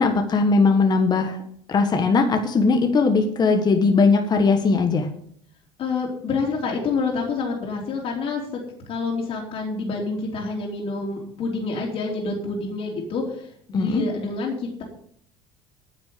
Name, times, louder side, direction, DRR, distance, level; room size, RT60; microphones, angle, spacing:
voice 1, 0.0-1.4 1.7-5.1 13.7-14.0, left 4 dB, 35° left, 5 dB, 1.4 m, -19 dB
voice 2, 5.8-8.4 8.9-14.8, left 4 dB, 50° left, -1 dB, 3.3 m, -27 dB
9.8 x 6.1 x 8.6 m, 0.65 s
supercardioid pair, 100°, 12 cm